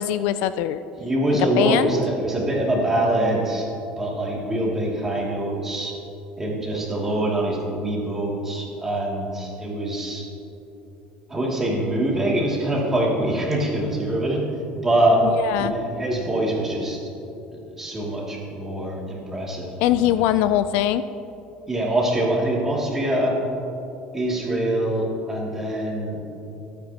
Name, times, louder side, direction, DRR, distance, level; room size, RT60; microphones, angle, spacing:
voice 1, 0.0-0.8 1.3-2.0 15.2-15.8 19.8-21.0, left 12 dB, 70° left, 13 dB, 0.4 m, -22 dB
voice 2, 1.0-3.6 4.0-5.9 6.4-10.2 11.3-14.4 14.8-15.2 15.6-17.0 17.6-20.2 21.7-23.4 24.1-26.2, right 1 dB, 15° right, -4 dB, 2.5 m, -24 dB
24.5 x 9.6 x 2.9 m, 2.9 s
cardioid pair, 160°, 3 cm